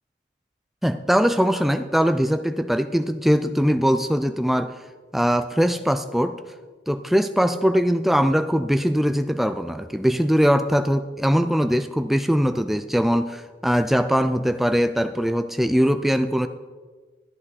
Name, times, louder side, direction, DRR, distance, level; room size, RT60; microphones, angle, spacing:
voice 1, 0.8-4.7 5.1-6.4 6.9-16.5, equal, ahead, 9 dB, 0.3 m, -21 dB
13.5 x 10.0 x 4.1 m, 1.4 s
head